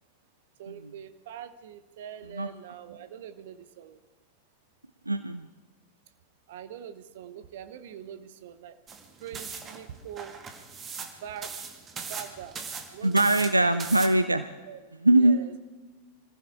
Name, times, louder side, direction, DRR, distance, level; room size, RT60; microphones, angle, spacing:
voice 1, 0.6-4.0 6.5-8.8 9.2-10.4 11.0-11.5 11.9-12.6 12.9-13.6 14.7-15.6, right 9 dB, 55° right, 11 dB, 1.0 m, -43 dB
voice 2, 5.1-5.5 13.0-14.5 15.0-15.4, right 1 dB, 85° right, 12 dB, 0.5 m, -21 dB
sound 1, 8.9-14.1, right 5 dB, 25° right, 1.9 m, -39 dB
25.5 x 15.0 x 3.7 m, 1.3 s
figure-of-eight pair, 90°, 0 cm